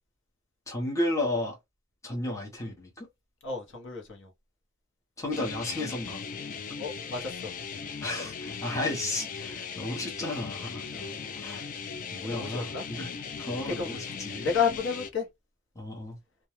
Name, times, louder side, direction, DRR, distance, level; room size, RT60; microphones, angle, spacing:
voice 1, 0.7-1.5 2.0-3.1 5.2-6.2 8.0-10.9 11.3-11.7 12.1-14.5 15.8-16.2, left 1 dB, 15° left, 0.7 m, -33 dB
voice 2, 3.4-4.3 6.8-7.5 10.9-11.3 12.3-12.8 13.7-13.9 14.4-15.2, left 6 dB, 55° left, 0.9 m, -31 dB
sound 1, 5.3-15.1, left 6 dB, 35° left, 0.3 m, -38 dB
2.3 x 2.2 x 2.9 m
head